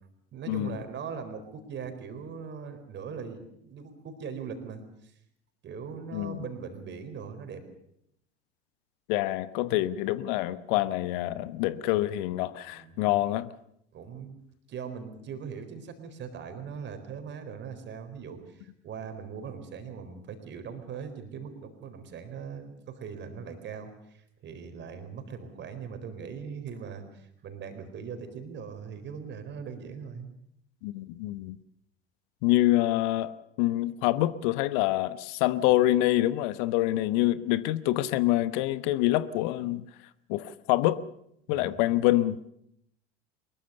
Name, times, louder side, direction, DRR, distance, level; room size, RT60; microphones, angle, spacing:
voice 1, 0.3-5.1 5.6-7.6 12.7-12.9 13.9-14.4 14.7-30.3 41.5-41.8, right 6 dB, 35° right, 4.3 m, -40 dB
voice 2, 6.1-6.4 9.1-13.5 30.8-31.6 32.4-33.3 33.6-39.8 40.3-41.0 41.5-42.5, left 16 dB, 50° left, 1.0 m, -26 dB
23.5 x 22.0 x 6.8 m
figure-of-eight pair, 70°, 31 cm